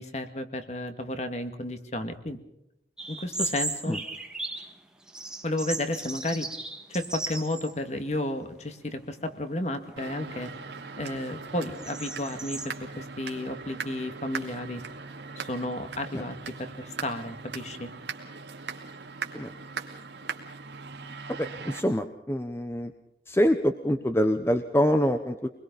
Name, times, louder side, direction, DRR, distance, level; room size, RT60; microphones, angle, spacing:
voice 1, 0.0-2.4 3.1-4.0 5.4-6.5 6.9-10.5 11.0-14.8 15.4-17.9, left 1 dB, 40° left, 8 dB, 2.0 m, -32 dB
sound 1, 3.0-4.7 5.1-7.8 8.1-8.2 9.0-9.4 9.8-12.7, right 2 dB, 5° right, 1.6 m, -36 dB
sound 2, 10.0-21.8, right 4 dB, 80° right, 2.4 m, -40 dB
voice 2, 21.4-22.9 23.3-25.5, equal, 15° left, 8 dB, 0.9 m, -25 dB
25.0 x 21.5 x 5.3 m, 0.80 s
head